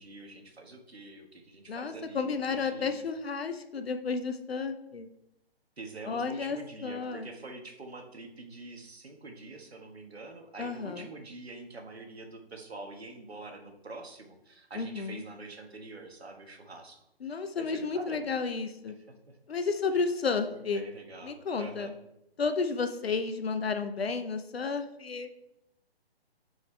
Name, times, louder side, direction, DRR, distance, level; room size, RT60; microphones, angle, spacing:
voice 1, 0.0-3.0 5.8-18.5 19.3-19.4 20.5-21.9, right 3 dB, 80° right, 3 dB, 1.5 m, -46 dB
voice 2, 1.7-5.1 6.1-6.6 6.8-7.3 10.6-11.1 14.7-15.2 17.2-18.9 19.5-20.8 21.2-21.9 22.4-25.3, left 4 dB, 75° left, 8 dB, 0.7 m, -32 dB
9.7 x 4.8 x 3.3 m, 0.85 s
figure-of-eight pair, 140°, 31 cm